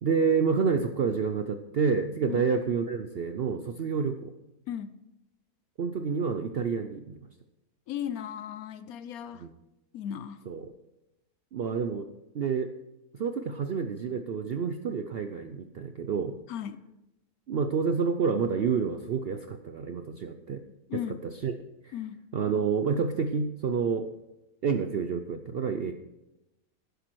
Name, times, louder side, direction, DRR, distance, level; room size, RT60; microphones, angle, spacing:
voice 1, 0.0-4.3 5.8-7.2 9.4-9.5 10.5-10.7 11.5-12.1 12.3-12.7 13.1-16.3 17.5-20.6 20.9-21.5 21.8-21.9 22.3-24.1 24.6-25.9, right 5 dB, 65° right, 8 dB, 0.6 m, -28 dB
voice 2, 4.7-5.0 7.9-9.5 9.9-10.4 16.5-16.8 20.9-21.2 21.9-22.2, left 9 dB, 70° left, 14 dB, 1.1 m, -36 dB
11.5 x 10.5 x 4.6 m, 0.95 s
omnidirectional pair, 1.6 m